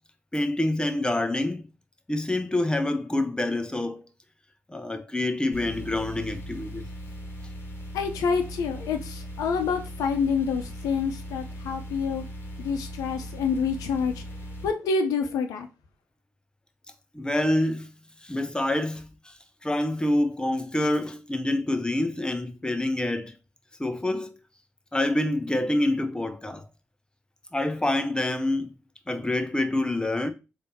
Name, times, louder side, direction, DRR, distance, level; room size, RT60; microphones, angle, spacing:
voice 1, 0.3-1.7 2.1-4.1 4.7-6.9 17.1-17.9 18.2-19.3 19.6-23.4 23.8-24.3 24.9-26.6 27.5-28.7 29.1-30.3, left 1 dB, 15° left, 0.9 m, -26 dB
sound 1, 5.5-14.7, equal, 40° left, 2.1 m, -39 dB
voice 2, 7.9-12.2 12.6-14.1 14.6-15.7, left 5 dB, 80° left, 0.7 m, -27 dB
3.5 x 2.8 x 4.2 m
hypercardioid pair, 40°, 6 cm